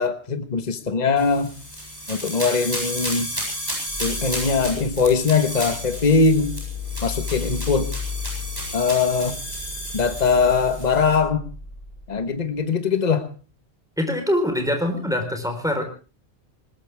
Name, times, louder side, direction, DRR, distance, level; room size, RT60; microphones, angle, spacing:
voice 1, 0.0-1.5 2.1-3.3 4.0-6.5 7.0-7.9 8.7-9.4 9.9-11.4 12.1-13.3, left 5 dB, 40° left, 1.4 m, -21 dB
sound 1, 1.2-11.2, equal, 20° right, 7.9 m, -32 dB
sound 2, 3.9-12.6, left 4 dB, 55° left, 5.4 m, -35 dB
voice 2, 14.0-15.8, left 1 dB, 5° right, 4.1 m, -24 dB
20.5 x 20.5 x 3.4 m
omnidirectional pair, 1.1 m